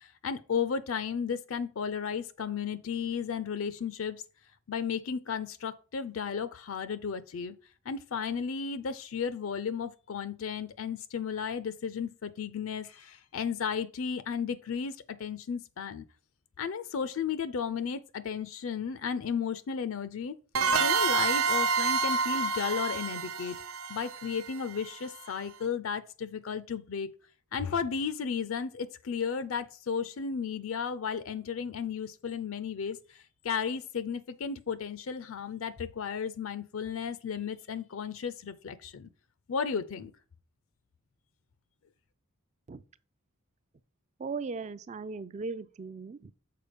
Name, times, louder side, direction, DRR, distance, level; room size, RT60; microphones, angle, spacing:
voice 1, 0.0-4.2 4.7-7.6 7.9-16.0 16.6-20.4 20.8-23.6 23.9-27.1 27.5-39.1 39.5-40.1, left 6 dB, 65° left, 0.5 m, -34 dB
sound 1, 20.5-25.1, right 5 dB, 75° right, 0.6 m, -28 dB
voice 2, 44.2-46.3, right 4 dB, 30° right, 0.3 m, -38 dB
6.7 x 4.3 x 5.0 m
head